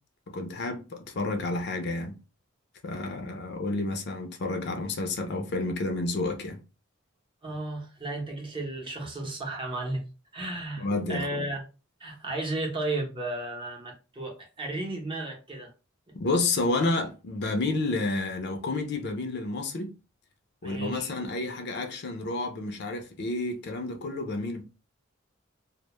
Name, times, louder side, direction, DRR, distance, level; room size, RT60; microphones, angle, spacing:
voice 1, 0.3-2.2 2.8-6.6 10.8-11.5 16.1-19.9 20.6-24.6, left 2 dB, 55° left, 0.5 m, -30 dB
voice 2, 7.4-10.0 10.3-11.6 12.0-15.7 20.6-21.1, right 2 dB, 25° right, 0.7 m, -34 dB
2.1 x 2.0 x 2.9 m
head